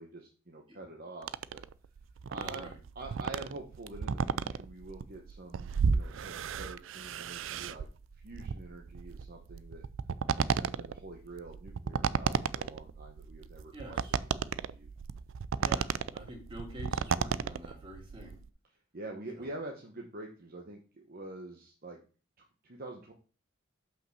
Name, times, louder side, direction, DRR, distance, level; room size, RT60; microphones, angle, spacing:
voice 1, 0.0-1.7 2.3-2.7 2.9-7.9 8.2-9.9 10.3-14.9 18.9-22.0 22.4-23.1, right 2 dB, 50° right, 1 dB, 1.1 m, -46 dB
sound 1, 1.2-18.5, right 6 dB, 70° right, 0.4 m, -34 dB
voice 2, 2.3-2.8 13.7-14.2 15.6-18.4 19.4-19.5, right 1 dB, 25° right, -1 dB, 2.7 m, -47 dB
5.8 x 5.3 x 6.4 m, 0.37 s
head